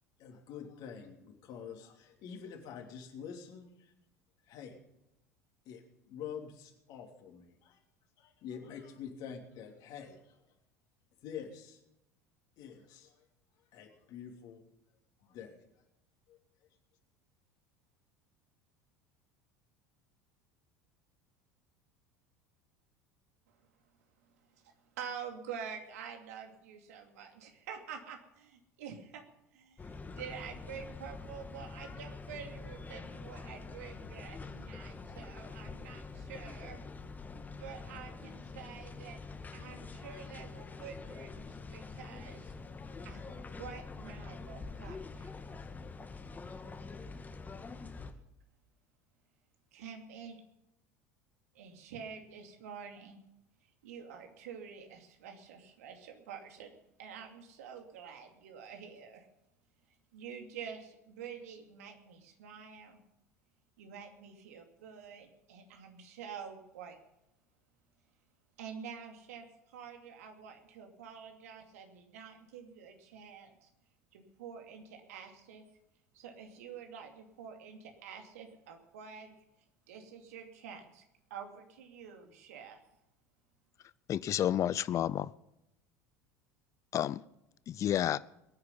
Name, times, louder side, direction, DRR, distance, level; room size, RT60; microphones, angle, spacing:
voice 1, 0.2-3.9 4.5-4.8 5.6-7.8 8.2-10.4 11.2-11.8 12.6-13.3 13.7-14.6 15.2-15.6 16.3-16.4, left 7 dB, 55° left, 3.2 m, -47 dB
voice 2, 24.5-29.2 29.5-36.8 37.6-39.2 39.5-42.5 43.0-45.3 49.7-50.4 51.5-53.2 53.6-59.3 60.1-63.0 63.8-67.0 68.6-73.7 74.1-75.7 76.1-79.4 79.9-81.0 81.3-82.8, right 7 dB, 70° right, 2.6 m, -48 dB
sound 1, 29.8-48.1, left 4 dB, 20° left, 1.9 m, -46 dB
voice 3, 84.1-85.3 86.9-87.2 87.7-88.2, left 11 dB, 35° left, 0.5 m, -30 dB
21.5 x 9.6 x 5.4 m
figure-of-eight pair, 70°, 8 cm